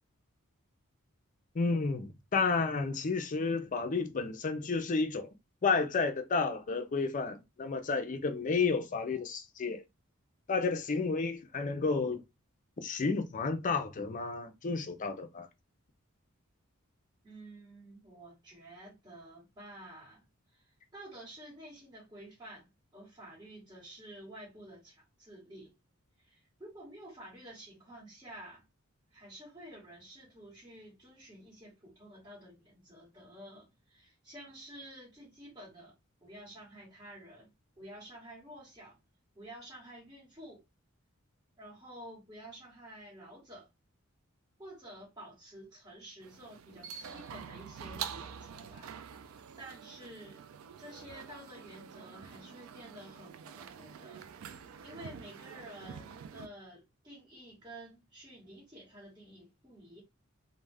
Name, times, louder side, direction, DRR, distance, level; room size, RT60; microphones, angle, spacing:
voice 1, 1.5-5.3 5.6-9.8 10.5-12.2 12.8-15.5, left 4 dB, 40° left, 0.4 m, -31 dB
voice 2, 17.2-20.2 20.5-25.7 26.2-28.6 29.1-35.9 36.2-37.5 37.8-39.0 39.3-40.6 41.6-43.7 44.6-48.9 49.2-50.4 50.8-60.0, right 1 dB, 20° right, 1.2 m, -51 dB
sound 1, 46.2-56.5, right 7 dB, 70° right, 0.3 m, -46 dB
2.3 x 2.1 x 3.3 m
head